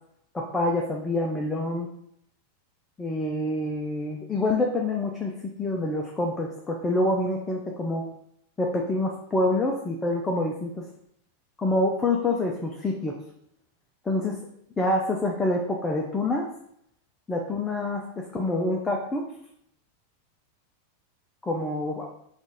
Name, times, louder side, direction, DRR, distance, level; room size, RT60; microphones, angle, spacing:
voice 1, 0.3-1.9 3.0-8.0 8.6-10.8 11.6-13.2 14.0-14.4 14.8-16.5 17.3-19.3 21.4-22.1, left 2 dB, 15° left, 0 dB, 0.5 m, -26 dB
4.6 x 2.5 x 4.0 m, 0.72 s
figure-of-eight pair, 90°, 0 cm